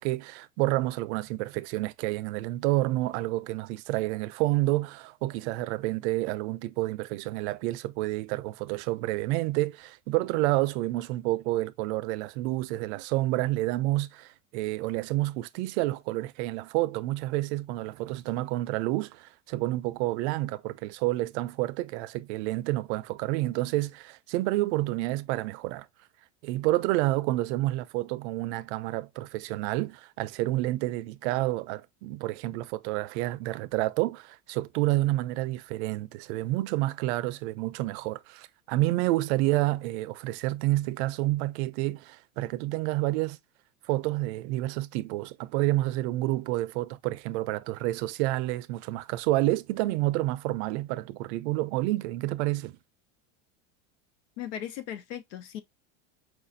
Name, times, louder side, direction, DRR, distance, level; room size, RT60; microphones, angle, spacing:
voice 1, 0.0-25.9 26.4-43.4 43.9-52.7, right 18 dB, 70° right, 0.5 m, -29 dB
voice 2, 54.4-55.6, left 10 dB, 85° left, 0.8 m, -37 dB
4.7 x 2.5 x 2.6 m
supercardioid pair, 145°, 36 cm